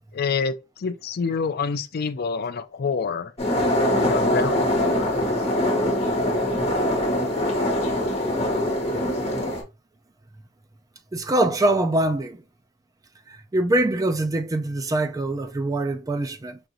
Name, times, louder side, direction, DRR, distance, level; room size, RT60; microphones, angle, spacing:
voice 1, 0.1-3.3 3.9-5.1, left 5 dB, 55° left, 0.4 m, -27 dB
sound 1, 3.4-9.6, left 1 dB, 35° left, 1.3 m, -23 dB
voice 2, 11.1-12.4 13.3-16.6, right 1 dB, 20° right, 0.4 m, -23 dB
5.0 x 2.6 x 2.8 m
head